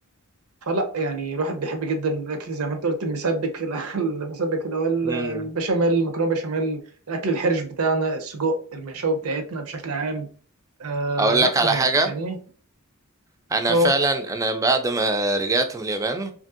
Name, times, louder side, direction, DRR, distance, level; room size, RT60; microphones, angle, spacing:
voice 1, 0.6-6.8 7.1-10.3 10.8-12.4 13.7-13.9, right 2 dB, 75° right, 6 dB, 0.6 m, -25 dB
voice 2, 5.0-5.4 11.2-12.1 13.5-16.3, right 2 dB, 15° right, 7 dB, 0.3 m, -22 dB
2.8 x 2.6 x 2.4 m, 0.43 s
head